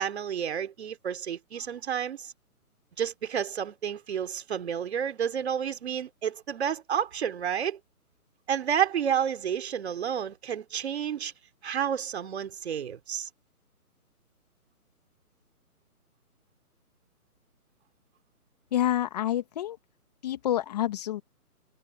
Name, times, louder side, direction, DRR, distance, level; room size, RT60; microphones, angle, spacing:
voice 1, 0.0-2.3 3.0-7.8 8.5-11.3 11.6-13.3, right 8 dB, 45° right, 3.4 m, -30 dB
voice 2, 18.7-19.8 20.2-21.2, left 12 dB, 25° left, 1.9 m, -28 dB
hypercardioid pair, 160°, 46 cm